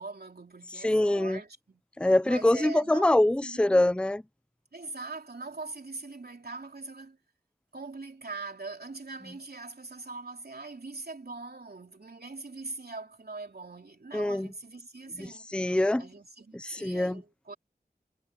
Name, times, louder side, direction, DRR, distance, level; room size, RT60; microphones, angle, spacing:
voice 1, 0.0-1.8 2.2-3.1 3.4-3.8 4.7-7.2 7.7-15.5 16.0-17.5, right 3 dB, 75° right, 3.2 m, -42 dB
voice 2, 0.8-1.4 2.0-4.2 14.1-14.5 15.2-16.1 16.5-17.2, left 1 dB, 5° left, 0.5 m, -24 dB
wide cardioid pair, 50°, 16 cm